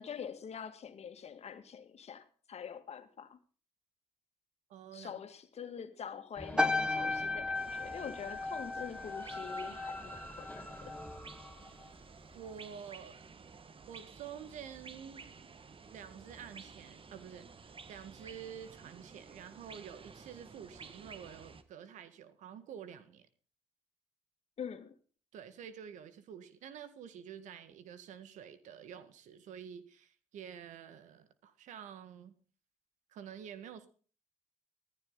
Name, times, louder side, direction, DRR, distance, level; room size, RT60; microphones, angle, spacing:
voice 1, 0.0-3.4 4.9-10.9 24.6-25.0, left 7 dB, 60° left, 2.1 m, -45 dB
voice 2, 4.7-5.2 12.3-13.2 13.9-15.2 15.9-23.3 25.3-32.3 33.1-33.9, right 8 dB, 80° right, 1.8 m, -49 dB
sound 1, 6.3-12.4, left 1 dB, 10° left, 5.3 m, -49 dB
sound 2, 6.6-11.2 11.5-11.9, left 2 dB, 5° right, 1.8 m, -35 dB
sound 3, 7.5-21.6, right 5 dB, 45° right, 1.8 m, -53 dB
16.5 x 14.5 x 4.0 m
supercardioid pair, 50°, 13 cm